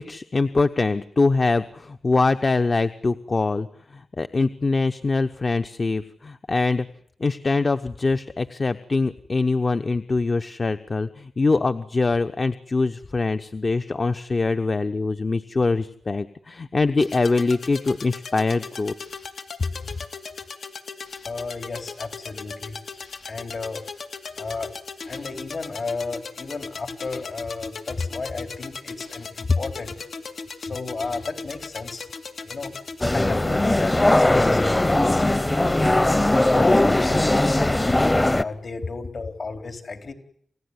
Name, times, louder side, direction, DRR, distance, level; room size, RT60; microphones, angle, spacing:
voice 1, 0.0-6.9 7.2-18.9 29.5-29.6, left 3 dB, 45° left, 9 dB, 1.0 m, -23 dB
sound 1, 17.0-33.0, left 4 dB, 85° left, 2.2 m, -38 dB
voice 2, 21.3-23.8 24.3-24.7 25.1-29.9 30.6-32.1 32.4-32.7 33.1-36.0 36.5-37.7 38.3-40.1, left 4 dB, 65° left, 7 dB, 3.7 m, -34 dB
sound 2, 33.0-38.4, left 1 dB, 20° left, 0.9 m, -19 dB
28.5 x 16.5 x 9.7 m, 0.68 s
cardioid pair, 70°, 0 cm